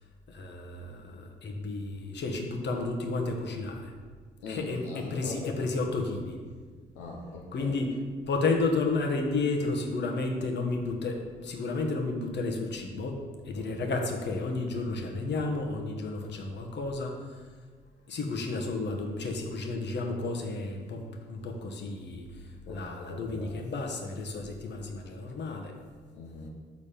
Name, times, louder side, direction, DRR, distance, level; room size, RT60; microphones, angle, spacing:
voice 1, 0.3-3.9 4.5-6.4 7.5-7.9 8.3-13.2 13.4-17.2 18.1-25.7, left 3 dB, 55° left, 2 dB, 1.2 m, -32 dB
voice 2, 4.4-5.6 6.9-7.7 13.5-13.7 22.7-23.6 26.1-26.5, left 3 dB, 80° left, -2 dB, 0.8 m, -41 dB
7.3 x 4.1 x 5.1 m, 1.5 s
hypercardioid pair, 50°, 21 cm